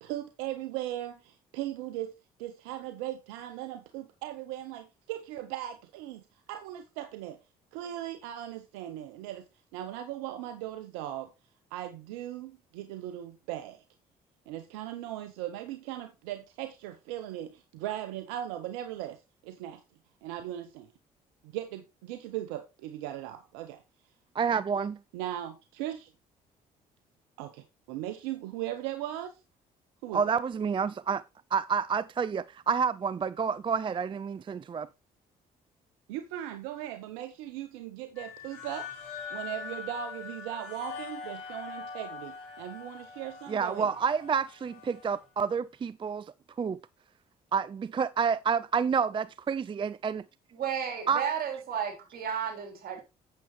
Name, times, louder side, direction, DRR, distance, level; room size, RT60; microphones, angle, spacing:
voice 1, 0.0-2.1 2.4-6.2 6.5-7.4 7.7-9.4 9.7-11.3 11.7-13.8 14.5-19.8 20.2-20.9 21.4-23.8 25.1-26.1 27.4-29.4 30.0-30.3 36.1-43.9, right 12 dB, 90° right, 0.7 m, -38 dB
voice 2, 24.4-25.0 30.1-31.2 31.5-34.9 43.5-46.2 46.6-46.8 47.5-50.2 51.1-51.2, right 6 dB, 30° right, 0.4 m, -29 dB
sound 1, 38.2-45.2, left 6 dB, 90° left, 2.3 m, -43 dB
voice 3, 50.5-53.0, right 8 dB, 60° right, 3.5 m, -33 dB
8.5 x 7.6 x 3.0 m
supercardioid pair, 55°, 17 cm